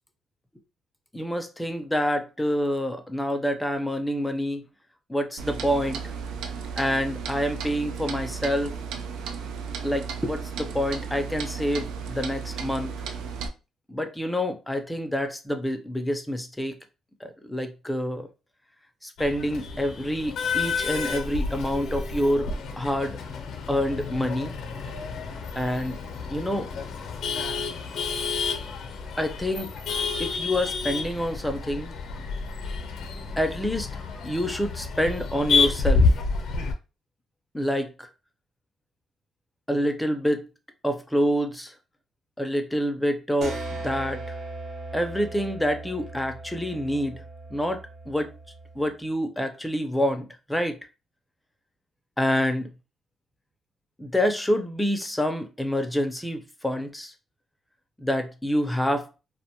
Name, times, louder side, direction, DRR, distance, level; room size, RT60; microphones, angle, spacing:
voice 1, 1.1-4.6 5.1-6.1 6.8-8.8 9.8-12.9 13.9-16.8 17.2-18.3 19.0-22.5 22.8-23.2 23.7-24.5 25.5-26.0 26.3-26.7 29.2-29.7 30.2-31.9 33.4-33.9 34.2-36.1 37.5-38.1 39.7-40.5 40.8-41.7 42.4-44.4 44.9-47.2 47.5-48.3 48.8-50.8 52.2-52.7 54.0-57.1 58.0-59.1, equal, 5° left, 0.5 m, -27 dB
Clock, 5.4-13.5, right 6 dB, 90° right, 0.3 m, -34 dB
Male speech man speaking / Laughter / Chatter, 19.2-36.7, left 4 dB, 70° left, 0.6 m, -29 dB
sound 1, 43.4-48.9, right 2 dB, 55° right, 0.9 m, -38 dB
2.4 x 2.2 x 2.8 m
cardioid pair, 90°, 0 cm